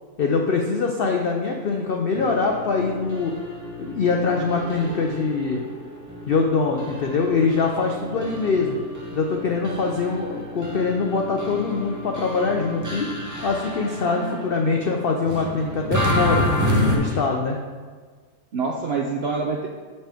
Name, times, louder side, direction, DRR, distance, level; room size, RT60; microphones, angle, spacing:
voice 1, 0.2-3.3 3.8-5.6 6.3-8.8 9.1-13.1 13.4-16.5 16.9-17.6, left 4 dB, 75° left, 2 dB, 0.5 m, -23 dB
sound 1, 2.1-14.6 15.2-17.0, left 1 dB, 20° right, 0.6 m, -29 dB
voice 2, 14.0-14.6 17.1-17.2 18.5-19.7, right 4 dB, 70° right, 0 dB, 0.6 m, -27 dB
7.3 x 5.5 x 3.4 m, 1.5 s
omnidirectional pair, 1.7 m